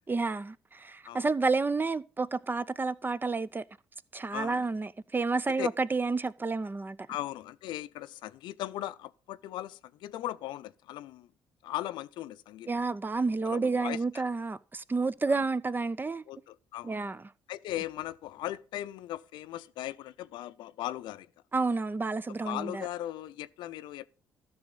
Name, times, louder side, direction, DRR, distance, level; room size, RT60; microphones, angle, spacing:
voice 1, 0.1-3.6 4.1-7.0 12.7-16.2 16.8-17.2 21.5-22.9, right 3 dB, 25° right, 0.6 m, -30 dB
voice 2, 4.3-4.7 5.6-5.7 7.1-11.3 11.6-12.7 13.4-14.2 15.3-15.4 16.3-16.9 17.5-21.3 22.3-24.1, left 14 dB, 70° left, 0.5 m, -38 dB
13.0 x 6.3 x 3.8 m
hypercardioid pair, 50°, 8 cm